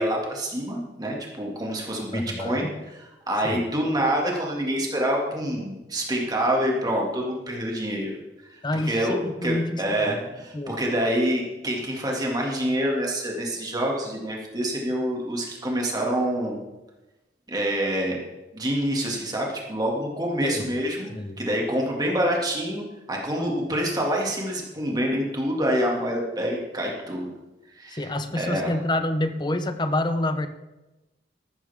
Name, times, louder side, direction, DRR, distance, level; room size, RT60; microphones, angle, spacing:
voice 1, 0.0-8.2 8.5-16.6 17.5-18.2 18.5-21.1 21.4-27.3 27.7-28.7, equal, 20° right, -1 dB, 2.3 m, -27 dB
voice 2, 2.1-2.8 3.4-3.6 8.6-10.2 10.5-10.8 20.4-20.6 21.1-21.4 27.9-30.5, left 1 dB, 25° left, 10 dB, 0.8 m, -28 dB
13.5 x 13.0 x 3.7 m, 1.0 s
head